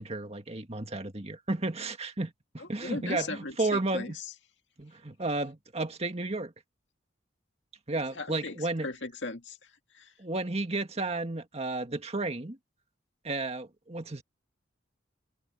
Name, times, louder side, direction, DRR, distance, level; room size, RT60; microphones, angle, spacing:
voice 1, 0.0-4.2 4.8-6.5 7.9-8.9 10.2-12.6 13.2-14.2, right 2 dB, 35° right, 1.9 m, -33 dB
voice 2, 2.6-4.3 8.1-10.1, left 3 dB, 70° left, 2.3 m, -38 dB
head